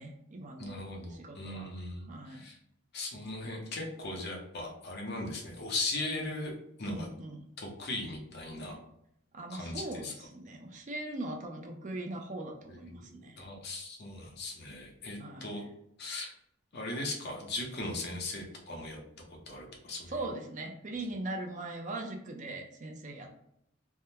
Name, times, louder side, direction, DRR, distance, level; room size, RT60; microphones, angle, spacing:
voice 1, 0.0-0.8 1.1-1.7 2.0-2.5 6.9-7.5 9.3-13.4 15.2-15.6 20.1-23.4, right 2 dB, 40° right, 2 dB, 0.5 m, -40 dB
voice 2, 0.6-2.6 2.9-6.5 6.8-7.1 7.6-8.8 9.5-10.1 12.7-15.6 16.0-16.3 16.7-19.0 19.3-20.1, left 2 dB, 55° left, 0 dB, 0.8 m, -38 dB
3.4 x 2.1 x 2.8 m, 0.74 s
head